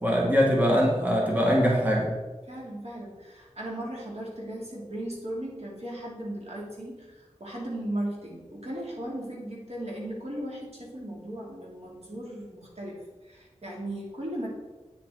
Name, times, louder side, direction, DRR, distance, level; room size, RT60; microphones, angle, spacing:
voice 1, 0.0-2.2, equal, 15° right, -3 dB, 1.8 m, -22 dB
voice 2, 2.5-14.5, right 1 dB, 60° right, -3 dB, 2.8 m, -37 dB
9.2 x 7.8 x 3.9 m, 1.2 s
wide cardioid pair, 70°, 12 cm